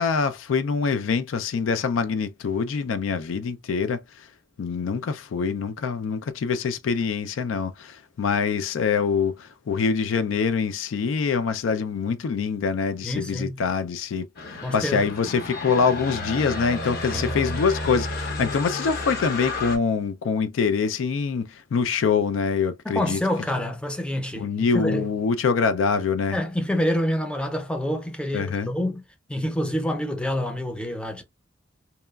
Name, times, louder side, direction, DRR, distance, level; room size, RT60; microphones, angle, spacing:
voice 1, 0.0-4.0 4.6-23.2 24.4-26.4 28.3-28.7, left 5 dB, 75° left, 0.3 m, -25 dB
voice 2, 13.0-13.6 14.6-15.1 17.1-17.4 22.9-25.1 26.3-29.0 29.3-31.2, equal, 5° left, 0.5 m, -27 dB
sound 1, 14.3-19.8, left 2 dB, 50° left, 0.8 m, -31 dB
2.9 x 2.3 x 2.2 m
head